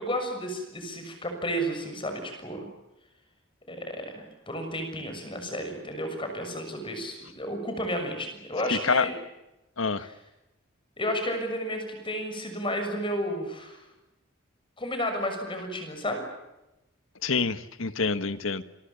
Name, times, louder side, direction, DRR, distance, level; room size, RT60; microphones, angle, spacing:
voice 1, 0.0-2.6 3.7-9.1 11.0-13.8 14.8-16.2, equal, 25° left, 5 dB, 6.6 m, -32 dB
voice 2, 8.7-9.1 9.8-10.1 17.2-18.6, left 4 dB, 80° left, 12 dB, 1.5 m, -27 dB
28.0 x 24.0 x 7.1 m, 0.95 s
head